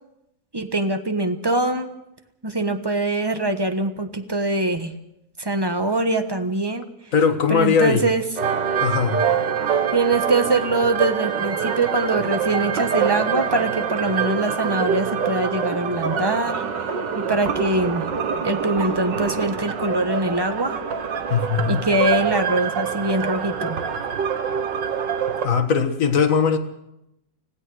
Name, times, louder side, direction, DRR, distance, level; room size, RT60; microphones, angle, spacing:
voice 1, 0.5-1.9 2.4-4.9 5.4-6.9 7.5-8.2 9.9-16.6 17.2-18.1 18.4-20.7 21.6-23.8, right 2 dB, 15° right, 8 dB, 1.0 m, -23 dB
voice 2, 7.1-8.1 8.8-9.2 21.3-21.8 25.4-26.6, left 6 dB, 45° left, 6 dB, 1.9 m, -19 dB
sound 1, 8.4-25.5, right 7 dB, 75° right, 2.0 m, -25 dB
25.5 x 16.5 x 6.3 m, 0.85 s
omnidirectional pair, 2.0 m